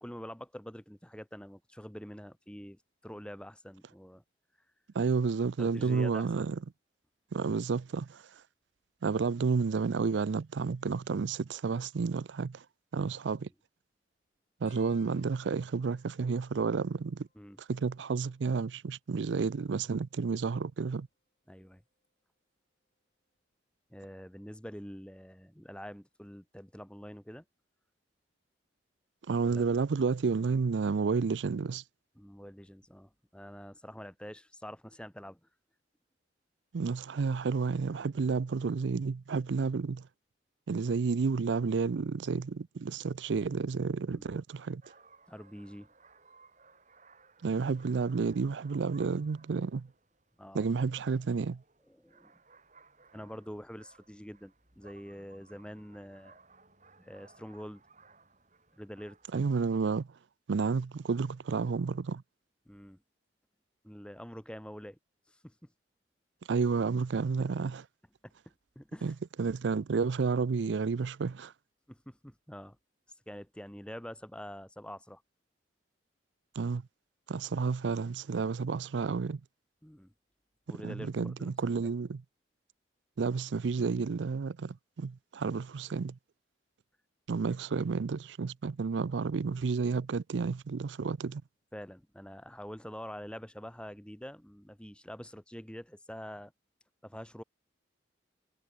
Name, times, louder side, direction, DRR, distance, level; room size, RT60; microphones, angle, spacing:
voice 1, 0.0-4.2 5.6-6.3 13.0-13.1 17.4-17.6 21.5-21.8 23.9-27.4 29.4-29.6 32.2-35.5 44.1-44.3 45.3-45.9 50.4-50.7 51.9-52.3 53.1-56.4 57.0-57.8 58.8-59.2 62.7-63.0 63.8-65.0 65.3-65.7 68.2-68.3 68.8-69.1 71.9-72.8 73.3-75.2 79.8-80.1 80.7-81.5 81.8-81.9 91.7-96.5 97.0-97.4, equal, 5° left, 2.1 m, -46 dB
voice 2, 4.9-6.6 7.3-8.4 9.0-12.7 12.9-13.5 14.6-17.3 17.6-21.1 29.3-31.8 36.7-40.1 40.7-44.8 47.4-49.9 50.5-51.6 59.3-60.2 60.5-62.2 66.5-67.8 69.0-71.5 76.5-76.8 77.3-79.4 80.7-82.2 83.2-86.2 87.3-91.4, right 5 dB, 80° right, 0.5 m, -31 dB
sound 1, 14.7-17.8 18.1-18.7 19.7-21.2 21.8-22.1 23.4-23.7 25.2-25.3, left 5 dB, 45° left, 7.6 m, -68 dB
sound 2, 44.8-59.4, right 4 dB, 40° right, 7.4 m, -61 dB
head